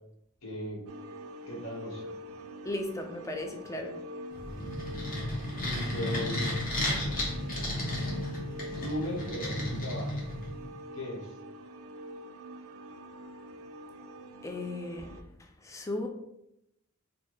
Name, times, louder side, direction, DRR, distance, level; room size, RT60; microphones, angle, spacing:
voice 1, 0.4-0.8 1.5-2.1 5.5-6.4 8.6-10.2 10.9-11.3, equal, 75° left, -3 dB, 1.2 m, -37 dB
sound 1, 0.9-15.2, equal, 80° right, 0.4 m, -45 dB
voice 2, 2.6-3.9 14.4-15.1 15.6-16.1, left 1 dB, 15° left, 4 dB, 0.3 m, -35 dB
sound 2, 4.3-10.6, left 1 dB, 40° left, 1.0 m, -33 dB
4.1 x 2.2 x 3.1 m, 0.84 s
head